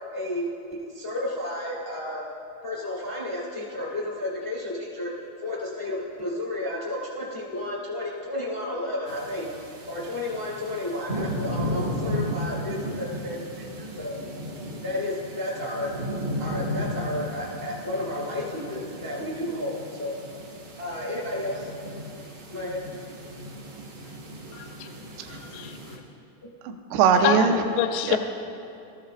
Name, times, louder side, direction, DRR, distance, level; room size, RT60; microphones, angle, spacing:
voice 1, 0.1-0.4 0.7-2.2 2.6-5.1 5.4-9.4 9.9-14.1 14.8-15.9 16.4-20.1 20.8-21.7 22.5-22.8, left 1 dB, 30° left, -6 dB, 0.5 m, -32 dB
sound 1, 9.1-26.0, equal, 65° right, 1.2 m, -35 dB
voice 2, 24.5-24.9 25.3-26.0 27.2-27.5 27.8-28.2, left 11 dB, 90° left, 6 dB, 2.2 m, -27 dB
voice 3, 26.6-27.6 28.1-28.2, right 6 dB, 80° right, 4 dB, 2.5 m, -21 dB
21.5 x 14.0 x 2.5 m, 2.6 s
omnidirectional pair, 5.5 m